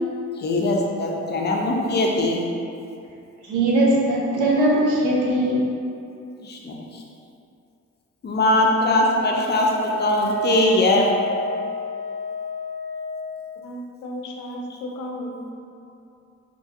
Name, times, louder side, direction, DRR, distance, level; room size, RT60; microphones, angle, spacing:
voice 1, 0.4-2.4 6.4-7.0 8.2-11.1, left 2 dB, 35° left, -1 dB, 0.4 m, -21 dB
voice 2, 3.4-5.6, right 1 dB, 85° right, -3 dB, 0.6 m, -20 dB
Wind instrument woodwind instrument, 9.6-13.2, right 1 dB, 70° right, 1.2 m, -30 dB
voice 3, 13.6-15.5, equal, 90° left, 0 dB, 0.5 m, -34 dB
2.9 x 2.6 x 2.4 m, 2.6 s
cardioid pair, 90°, 30 cm